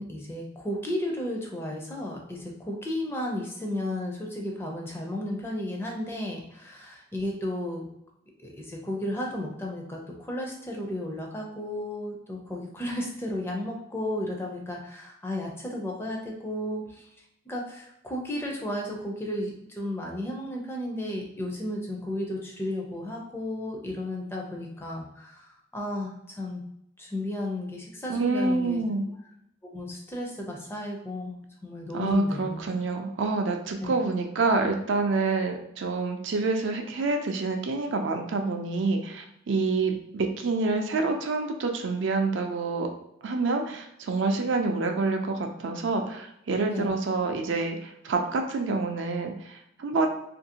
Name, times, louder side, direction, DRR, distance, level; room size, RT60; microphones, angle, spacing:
voice 1, 0.0-7.9 8.4-17.1 17.5-26.6 27.0-28.8 29.6-31.4 31.6-32.7 33.8-33.9 46.6-46.9, left 1 dB, 10° left, 0 dB, 0.4 m, -33 dB
voice 2, 28.1-29.1 31.9-42.9 43.2-50.1, right 3 dB, 70° right, 4 dB, 0.4 m, -27 dB
2.7 x 2.5 x 2.8 m, 0.77 s
head